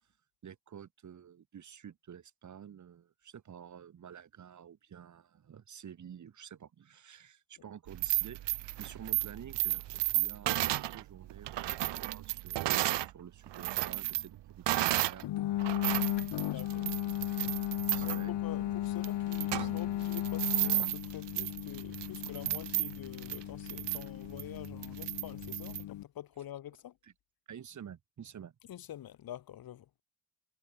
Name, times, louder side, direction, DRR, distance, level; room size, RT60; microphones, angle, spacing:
voice 1, 0.4-15.7 16.7-17.2 17.9-18.4 27.0-27.1 27.5-28.6, right 8 dB, 45° right, 2.5 m, -50 dB
sound 1, 7.9-13.1 13.5-15.2 15.6-25.8, right 15 dB, 90° right, 1.3 m, -34 dB
sound 2, 15.2-26.0, left 14 dB, 80° left, 1.4 m, -36 dB
voice 2, 16.4-16.9 18.0-26.9 28.7-29.9, left 12 dB, 55° left, 1.2 m, -46 dB
wide cardioid pair, 170°, 41 cm